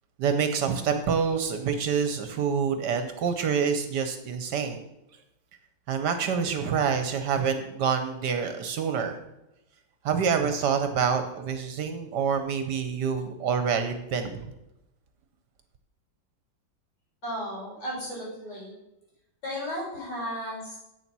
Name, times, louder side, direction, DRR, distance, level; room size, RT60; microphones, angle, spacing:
voice 1, 0.2-4.8 5.9-9.2 10.0-14.5, right 6 dB, 65° right, 8 dB, 1.3 m, -27 dB
voice 2, 17.2-18.7 19.4-20.8, equal, 60° left, -6 dB, 5.3 m, -34 dB
8.5 x 6.9 x 6.0 m, 0.91 s
omnidirectional pair, 2.1 m